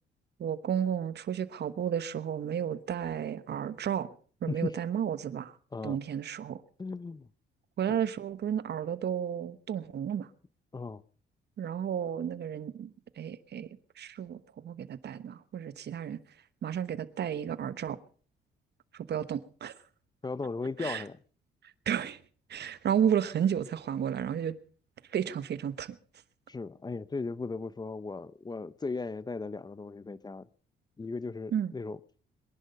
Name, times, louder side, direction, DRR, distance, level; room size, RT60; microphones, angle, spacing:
voice 1, 0.4-4.1 4.4-5.5 5.8-6.6 7.8-10.3 11.6-13.7 14.0-16.2 16.6-18.0 18.9-19.7 20.8-21.0 21.9-22.2 22.5-24.5 25.1-26.0 31.5-31.7, right 9 dB, 55° right, 1.2 m, -32 dB
voice 2, 6.8-7.3 10.7-11.0 20.2-21.2 26.5-30.5 31.0-32.0, left 3 dB, 20° left, 0.7 m, -36 dB
23.5 x 11.0 x 5.3 m
cardioid pair, 90°, 20 cm